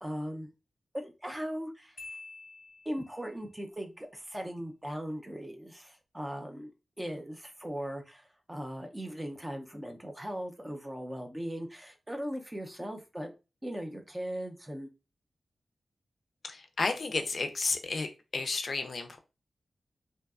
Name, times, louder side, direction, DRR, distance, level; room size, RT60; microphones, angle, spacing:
voice 1, 0.0-0.5 0.9-2.0 2.9-13.3 13.6-14.9, equal, 15° right, 4 dB, 0.4 m, -39 dB
Marimba xylophone, 2.0-3.4, left 3 dB, 25° left, 0.8 m, -48 dB
voice 2, 16.4-18.1 18.3-19.2, left 3 dB, 55° left, 6 dB, 0.3 m, -32 dB
2.6 x 2.2 x 2.3 m, 0.29 s
wide cardioid pair, 140°, 0 cm